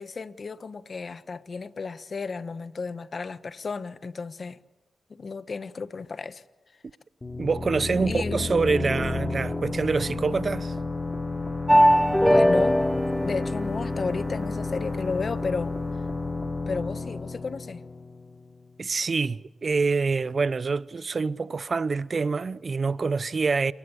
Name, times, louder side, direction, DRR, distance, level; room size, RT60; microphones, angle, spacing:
voice 1, 0.0-4.6 5.1-6.4 8.1-8.9 12.3-12.8 13.2-15.7 16.7-17.8, left 4 dB, 55° left, 1.2 m, -33 dB
sound 1, 7.2-18.7, left 3 dB, 30° left, 3.3 m, -32 dB
voice 2, 7.4-10.7 18.8-23.7, right 4 dB, 50° right, 0.8 m, -26 dB
sound 2, 11.7-14.6, equal, 5° left, 1.3 m, -21 dB
29.0 x 20.0 x 8.6 m
cardioid pair, 55°, 0 cm